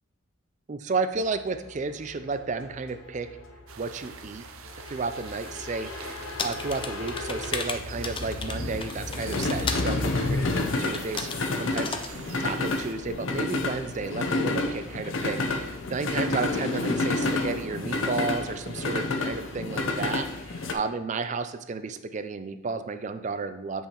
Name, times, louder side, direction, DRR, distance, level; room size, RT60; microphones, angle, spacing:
voice 1, 0.7-3.4 3.8-4.5 4.9-5.9 6.4-11.3 11.6-23.9, right 4 dB, 35° right, 10 dB, 0.4 m, -32 dB
sound 1, 1.2-20.7, left 2 dB, 70° left, 0.7 m, -30 dB
sound 2, 3.7-12.9, right 7 dB, 85° right, 0.5 m, -46 dB
sound 3, 6.4-9.9 10.8-11.4 11.8-12.1, left 5 dB, 25° left, 0.4 m, -34 dB
8.3 x 5.5 x 3.0 m, 0.94 s
head